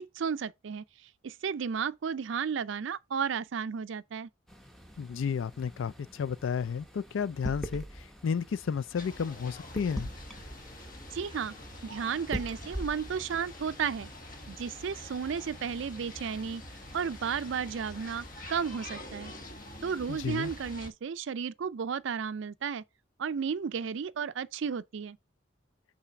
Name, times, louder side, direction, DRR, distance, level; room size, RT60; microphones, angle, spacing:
voice 1, 0.0-4.3 11.1-11.5 11.8-14.1 14.5-16.6 16.9-19.3 19.8-22.8 23.2-25.2, right 6 dB, 65° right, 0.4 m, -33 dB
sound 1, 4.5-18.7, equal, ahead, 0.8 m, -45 dB
voice 2, 5.0-10.1 20.1-20.5, left 6 dB, 70° left, 0.4 m, -32 dB
sound 2, 9.0-20.9, left 1 dB, 40° left, 1.1 m, -46 dB
5.7 x 4.0 x 5.8 m
head